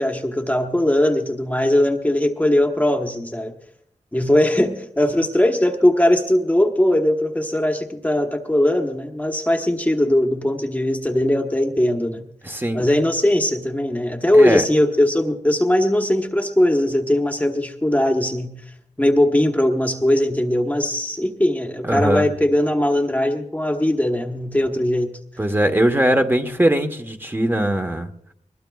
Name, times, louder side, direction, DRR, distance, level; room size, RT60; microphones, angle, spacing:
voice 1, 0.0-3.5 4.1-12.3 12.7-18.5 19.0-25.1, left 1 dB, 10° left, 3 dB, 1.1 m, -19 dB
voice 2, 12.4-12.8 14.3-14.6 21.8-22.3 25.4-28.1, right 1 dB, 15° right, 5 dB, 1.1 m, -20 dB
22.0 x 20.5 x 2.4 m, 0.72 s
wide cardioid pair, 105°, 13 cm